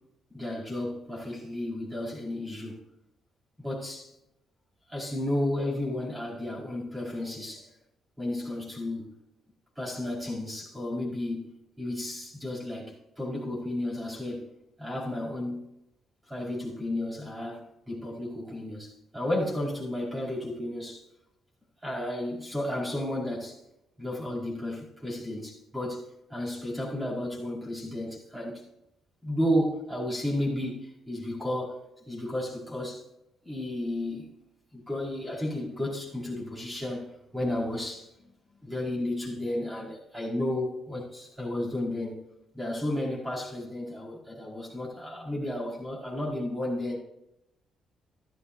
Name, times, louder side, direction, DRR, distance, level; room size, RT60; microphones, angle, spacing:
voice 1, 0.3-2.8 3.6-4.1 4.9-7.7 8.2-9.1 9.8-14.5 14.8-15.7 16.3-21.0 21.8-23.6 24.0-28.6 29.2-31.8 32.1-33.0 33.4-34.3 34.7-37.1 37.3-38.1 38.6-42.2 42.5-47.0, left 1 dB, 15° right, 5.0 m, -33 dB
13.5 x 12.0 x 2.7 m
cardioid pair, 90°, 0 cm